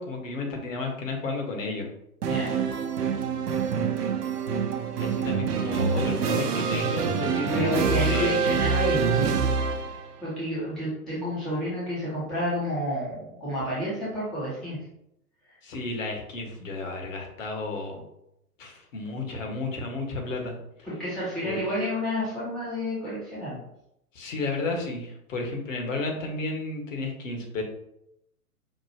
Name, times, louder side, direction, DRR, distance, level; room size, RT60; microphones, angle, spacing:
voice 1, 0.0-1.9 4.9-8.5 15.6-18.0 18.6-20.9 21.4-21.6 24.1-27.6, left 3 dB, 55° left, 2 dB, 1.3 m, -32 dB
sound 1, 2.2-10.1, right 6 dB, 75° right, 0.7 m, -26 dB
voice 2, 2.3-2.8 7.5-9.4 10.2-14.8 20.8-23.5, equal, ahead, -10 dB, 0.5 m, -30 dB
5.2 x 2.3 x 2.8 m, 0.79 s
figure-of-eight pair, 120°, 47 cm